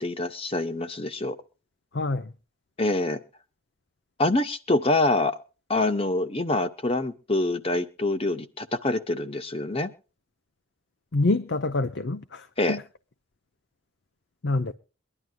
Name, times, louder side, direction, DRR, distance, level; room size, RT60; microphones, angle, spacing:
voice 1, 0.0-1.4 2.8-3.2 4.2-5.4 5.7-9.9 12.6-12.8, left 2 dB, 25° left, 0.9 m, -25 dB
voice 2, 1.9-2.3 11.1-12.8 14.4-14.8, left 2 dB, 55° left, 0.6 m, -26 dB
23.5 x 11.0 x 2.3 m
head